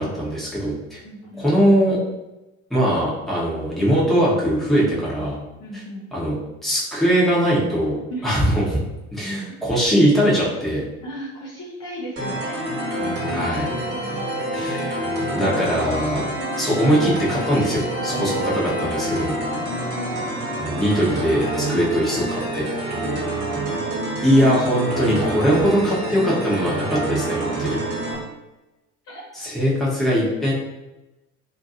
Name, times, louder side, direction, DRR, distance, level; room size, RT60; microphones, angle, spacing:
voice 1, 0.0-1.0 1.4-2.0 2.7-5.4 6.1-6.3 6.6-8.0 8.2-8.6 9.1-10.8 13.3-13.7 14.5-14.9 15.3-16.3 16.6-19.3 20.6-22.6 24.2-27.8 29.4-30.5, equal, ahead, -7 dB, 1.0 m, -21 dB
voice 2, 1.0-1.5 5.1-5.3 5.6-6.1 8.1-8.4 9.7-9.8 11.0-13.4 13.9-14.4 18.1-18.4 19.7-20.3 21.7-21.9 23.0-23.8 27.3-28.3 29.0-29.5, equal, 35° left, -5 dB, 0.8 m, -37 dB
sound 1, 12.2-28.2, right 1 dB, 35° right, 1.4 m, -27 dB
2.8 x 2.4 x 2.5 m, 1.0 s
figure-of-eight pair, 70°, 42 cm